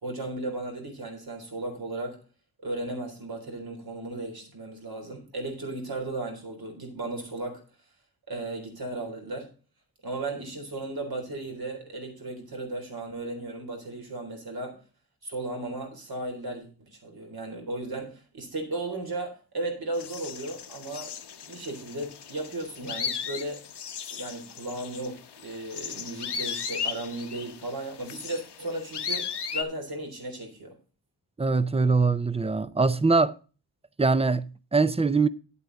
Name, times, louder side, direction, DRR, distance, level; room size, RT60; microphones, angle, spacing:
voice 1, 0.0-2.2 2.6-7.6 8.3-9.5 10.0-14.8 15.2-21.2 21.4-23.7 24.1-30.8, right 2 dB, 65° right, 3.7 m, -35 dB
sound 1, 19.9-29.6, left 6 dB, 90° left, 1.0 m, -36 dB
voice 2, 31.4-33.3 34.0-35.3, right 4 dB, 15° right, 0.5 m, -23 dB
10.5 x 8.3 x 3.9 m
wide cardioid pair, 125°, 39 cm